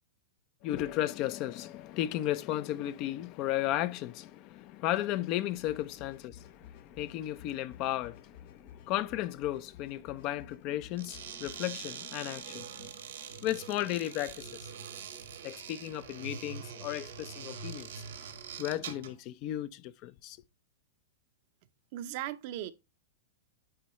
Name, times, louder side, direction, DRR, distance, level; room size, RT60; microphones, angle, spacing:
voice 1, 0.6-12.9 13.4-14.7 15.4-18.0 18.6-20.4, left 14 dB, 40° left, 0.4 m, -35 dB
sound 1, 5.6-11.5, left 8 dB, 60° left, 3.1 m, -54 dB
sound 2, 10.9-19.2, right 7 dB, 85° right, 1.5 m, -44 dB
voice 2, 21.9-22.7, right 13 dB, 50° right, 0.6 m, -37 dB
9.4 x 3.7 x 3.0 m
hypercardioid pair, 140°, 0 cm